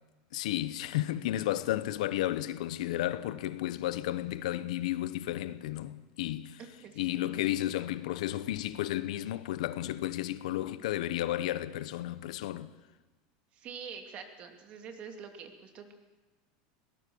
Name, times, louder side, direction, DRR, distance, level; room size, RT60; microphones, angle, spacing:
voice 1, 0.3-6.6 7.0-12.7, left 14 dB, 85° left, 1.0 m, -33 dB
voice 2, 6.6-7.3 13.5-15.9, right 6 dB, 35° right, 2.5 m, -46 dB
22.5 x 18.0 x 7.1 m
supercardioid pair, 160°, 4 cm